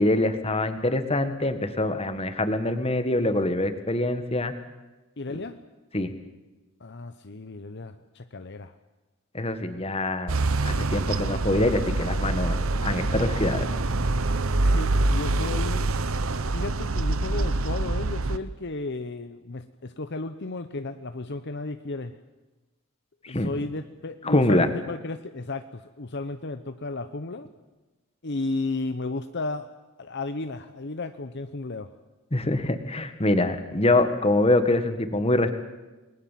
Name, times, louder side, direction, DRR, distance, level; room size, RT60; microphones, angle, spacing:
voice 1, 0.0-4.5 5.9-6.1 9.3-12.6 12.8-13.7 23.2-23.5 24.2-24.7 32.3-35.5, left 2 dB, 25° left, 9 dB, 1.8 m, -24 dB
voice 2, 5.2-5.6 6.8-8.7 14.5-15.9 16.5-22.2 23.3-27.5 28.2-29.7 30.0-31.9, left 2 dB, 50° left, 9 dB, 0.9 m, -34 dB
sound 1, 10.3-18.4, right 2 dB, 65° right, 1.0 m, -25 dB
29.0 x 20.5 x 7.6 m, 1.2 s
head